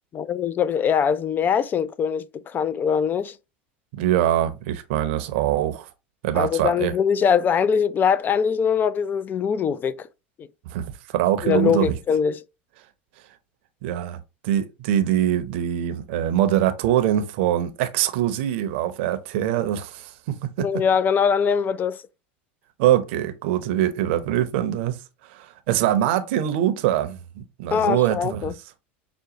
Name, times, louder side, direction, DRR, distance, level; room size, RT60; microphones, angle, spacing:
voice 1, 0.1-3.3 6.3-10.1 10.4-10.5 11.4-12.4 20.6-22.0 27.7-28.5, left 7 dB, 30° left, 0.4 m, -22 dB
voice 2, 4.0-5.8 6.2-6.9 10.7-10.8 11.1-12.0 13.8-14.2 14.4-20.7 22.8-25.0 25.4-28.5, right 12 dB, 70° right, 0.7 m, -23 dB
5.9 x 2.2 x 2.9 m
hypercardioid pair, 100°, 7 cm